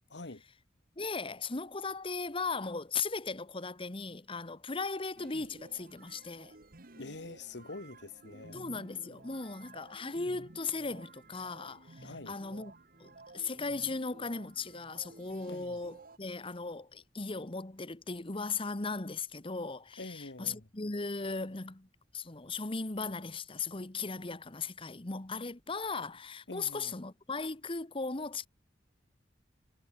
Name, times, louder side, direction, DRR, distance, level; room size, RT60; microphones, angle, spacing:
voice 1, 0.1-0.4 7.0-8.7 12.0-12.4 15.5-15.8 20.0-20.7 26.5-27.0, left 2 dB, 80° left, 1.7 m, -46 dB
voice 2, 1.0-6.5 8.5-12.7 13.0-21.9 22.1-28.5, left 4 dB, 30° left, 1.3 m, -37 dB
sound 1, 5.2-16.2, right 2 dB, 55° right, 2.2 m, -54 dB
head